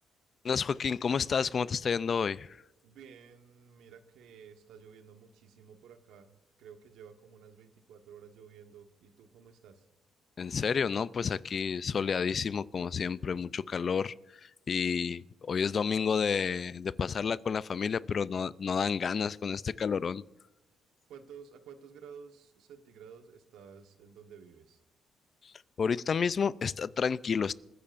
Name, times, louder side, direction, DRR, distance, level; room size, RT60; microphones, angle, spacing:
voice 1, 0.4-2.6 10.4-14.1 14.4-20.2 25.4-25.5 25.8-27.5, left 6 dB, 45° left, 0.4 m, -30 dB
voice 2, 2.8-9.9 21.1-24.8, right 7 dB, 85° right, 1.3 m, -52 dB
27.5 x 9.9 x 2.6 m
cardioid pair, 90°, 0 cm